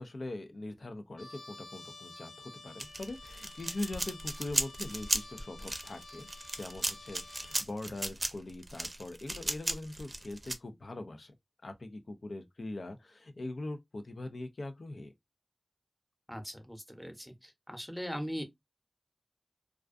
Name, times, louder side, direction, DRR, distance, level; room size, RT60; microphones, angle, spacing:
voice 1, 0.0-6.3 6.6-11.3 11.6-15.1, left 2 dB, 90° left, 0.5 m, -42 dB
Trumpet, 1.2-7.7, left 2 dB, 70° left, 1.2 m, -51 dB
sound 1, 2.8-10.5, right 1 dB, 45° right, 0.5 m, -35 dB
voice 2, 16.3-18.4, equal, 5° left, 0.7 m, -40 dB
2.3 x 2.3 x 2.4 m
wide cardioid pair, 50°, 0 cm